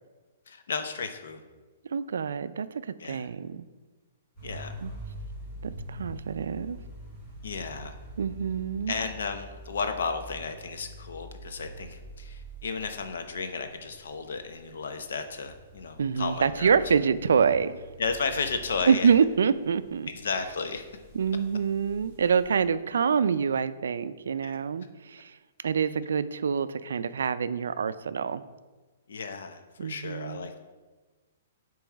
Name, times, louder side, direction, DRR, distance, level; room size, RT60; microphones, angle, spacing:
voice 1, 0.5-1.4 3.0-3.3 4.4-4.7 7.4-7.9 8.9-16.8 18.0-19.1 20.1-20.9 24.4-24.6 29.1-30.6, left 5 dB, 70° left, 7 dB, 0.6 m, -33 dB
voice 2, 1.9-3.7 4.8-4.9 5.6-6.8 8.2-9.0 16.0-17.8 18.9-20.1 21.1-25.4 25.6-28.4 29.8-30.5, right 6 dB, 85° right, 14 dB, 0.3 m, -26 dB
sound 1, 4.4-22.6, right 1 dB, 10° left, 1.3 m, -45 dB
7.1 x 3.0 x 4.6 m, 1.3 s
hypercardioid pair, 180°, 0 cm